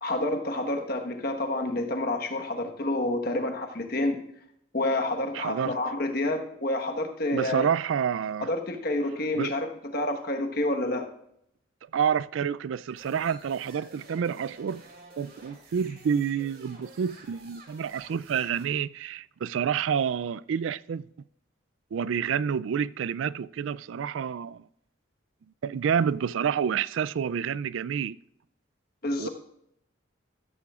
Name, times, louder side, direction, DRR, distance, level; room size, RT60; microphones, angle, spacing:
voice 1, 0.0-4.2 4.7-7.7 8.4-9.7 9.9-11.1 29.0-29.3, left 1 dB, 50° left, 1.3 m, -28 dB
voice 2, 5.3-5.8 7.3-8.5 9.3-9.5 11.9-14.8 15.2-21.0 21.9-24.6 25.6-28.2 29.2-29.3, right 7 dB, 80° right, 0.3 m, -28 dB
sound 1, 12.9-18.7, right 2 dB, 50° right, 2.6 m, -51 dB
14.0 x 13.5 x 2.4 m
head